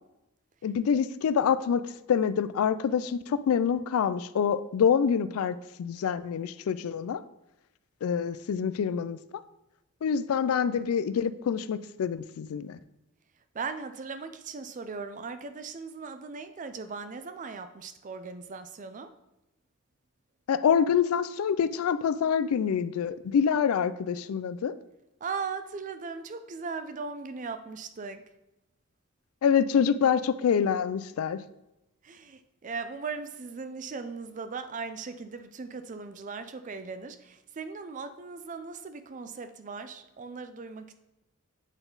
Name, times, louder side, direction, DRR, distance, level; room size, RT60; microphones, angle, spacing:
voice 1, 0.6-1.8 2.1-7.2 8.0-9.2 10.0-12.8 20.5-24.7 29.4-31.4, left 7 dB, 80° left, 14 dB, 0.3 m, -26 dB
voice 2, 13.5-19.1 25.2-28.2 32.0-40.9, right 4 dB, 35° right, 10 dB, 0.4 m, -38 dB
8.0 x 4.0 x 3.8 m, 0.92 s
head